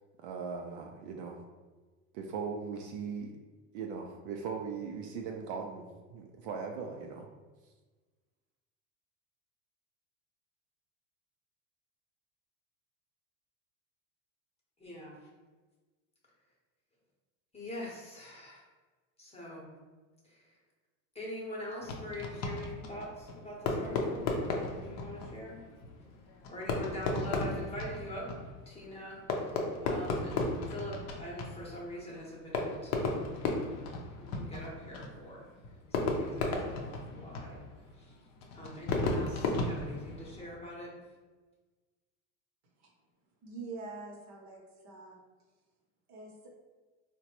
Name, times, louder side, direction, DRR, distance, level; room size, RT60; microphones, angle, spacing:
voice 1, 0.2-1.4 2.1-3.4 3.7-7.3, right 5 dB, 60° right, 2 dB, 0.5 m, -39 dB
voice 2, 14.8-15.2 17.5-18.6 19.2-19.7 20.2-20.5 21.1-25.6 26.5-28.2 28.7-33.5 34.2-35.4 35.9-37.6 38.0-38.1 38.5-40.9, left 1 dB, 15° left, -3 dB, 0.9 m, -43 dB
Fireworks, 21.8-40.6, left 3 dB, 45° left, 0.6 m, -35 dB
voice 3, 43.4-45.2 46.1-46.6, right 3 dB, 45° right, 0 dB, 0.8 m, -45 dB
3.7 x 2.2 x 2.9 m, 1.3 s
supercardioid pair, 115°, 39 cm